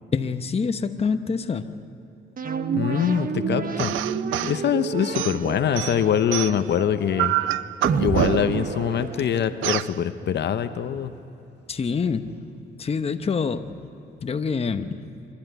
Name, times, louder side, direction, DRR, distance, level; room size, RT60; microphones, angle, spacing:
voice 1, 0.1-1.8 11.7-13.7 14.2-15.1, left 5 dB, 30° left, 8 dB, 0.9 m, -26 dB
sound 1, 2.4-9.8, right 5 dB, 45° right, 1.2 m, -29 dB
voice 2, 2.7-3.9 4.4-7.3 8.0-11.1, left 9 dB, 60° left, 9 dB, 0.9 m, -24 dB
sound 2, 3.8-4.6 5.1-6.7 7.2-8.7 9.6-9.9, right 15 dB, 80° right, 0.4 m, -27 dB
26.5 x 12.0 x 9.2 m, 3.0 s
cardioid pair, 90°, 20 cm